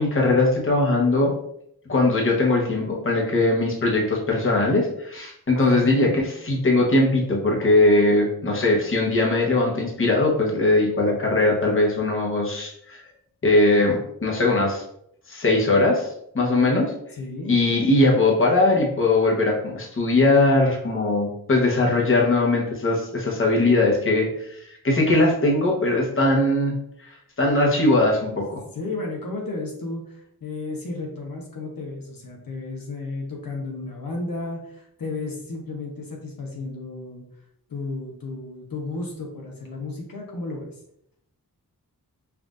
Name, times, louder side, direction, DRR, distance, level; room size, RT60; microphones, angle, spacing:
voice 1, 0.0-1.3 1.9-13.0 13.4-14.8 15.3-16.1 16.3-16.9 17.5-26.7 27.0-28.6, left 2 dB, 35° left, -1 dB, 1.0 m, -20 dB
voice 2, 5.6-6.3 17.1-17.5 28.7-37.2 37.7-40.7, left 3 dB, 65° left, -1 dB, 0.9 m, -33 dB
5.8 x 2.5 x 2.4 m, 0.73 s
wide cardioid pair, 85°, 36 cm